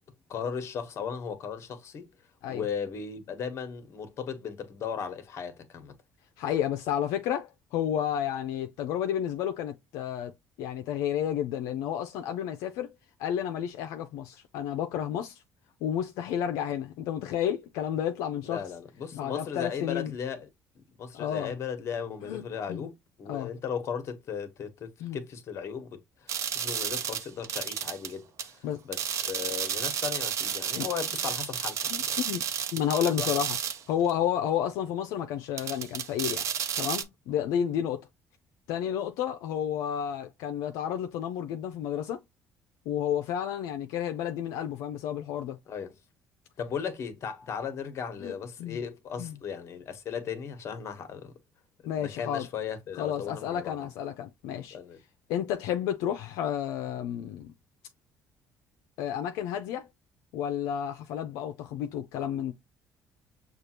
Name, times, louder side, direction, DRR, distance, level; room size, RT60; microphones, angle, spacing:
voice 1, 0.3-2.1 2.5-5.9 18.4-20.5 21.0-32.2 33.1-33.4 37.3-37.4 45.7-45.9 46.6-51.3 52.0-53.9 54.7-55.0, left 7 dB, 55° left, 1.2 m, -36 dB
voice 2, 6.4-10.3 10.6-12.9 13.2-15.4 15.8-18.6 19.1-20.1 21.1-21.5 22.2-22.4 22.7-22.8 23.3-23.5 25.0-25.2 28.6-28.8 30.7-30.9 32.2-32.4 32.7-33.6 33.9-36.4 36.8-38.1 38.7-42.2 42.9-45.6 48.2-48.3 48.6-48.8 49.2-49.4 51.9-52.5 53.0-54.8 55.3-57.5 59.0-59.9 60.3-62.5, left 9 dB, 85° left, 0.5 m, -31 dB
sound 1, 26.3-28.1 28.4-28.5 28.9-33.8 34.1-34.2 35.6-37.0, right 8 dB, 60° right, 0.8 m, -32 dB
6.6 x 2.4 x 2.9 m
cardioid pair, 100°, 6 cm